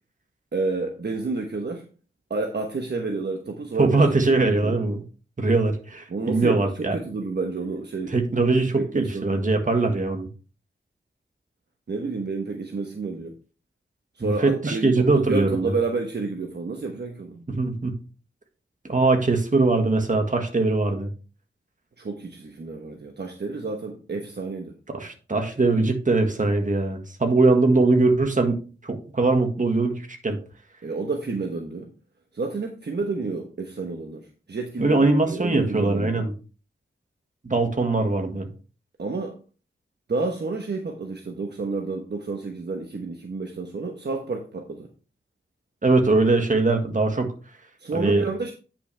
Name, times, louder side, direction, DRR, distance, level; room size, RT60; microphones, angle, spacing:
voice 1, 0.5-1.9 2.3-4.8 6.1-8.1 8.7-9.2 11.9-13.3 14.2-17.4 22.0-24.7 30.8-31.9 32.3-36.3 39.0-39.4 40.1-44.9 47.8-48.5, right 3 dB, 55° right, 1.1 m, -30 dB
voice 2, 3.8-5.0 5.4-7.0 8.1-10.3 14.2-15.7 17.5-18.0 18.9-21.1 24.9-28.5 28.8-30.4 34.8-36.3 37.4-38.5 45.8-47.3 47.9-48.3, right 3 dB, 40° right, 1.8 m, -21 dB
9.7 x 5.9 x 3.4 m
wide cardioid pair, 90°, 20 cm